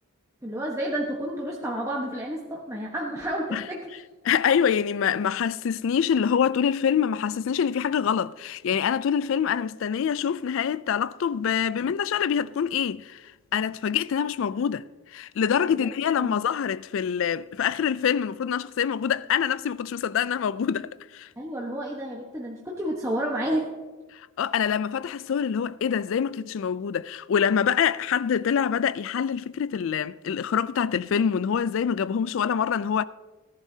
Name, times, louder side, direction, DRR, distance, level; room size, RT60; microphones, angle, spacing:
voice 1, 0.4-3.9 15.6-15.9 16.2-16.4 21.4-23.7, right 1 dB, 15° right, 1.1 m, -30 dB
voice 2, 4.2-13.2 13.5-14.8 15.1-21.3 24.1-33.0, left 7 dB, 60° left, 0.3 m, -25 dB
17.5 x 11.0 x 2.8 m
head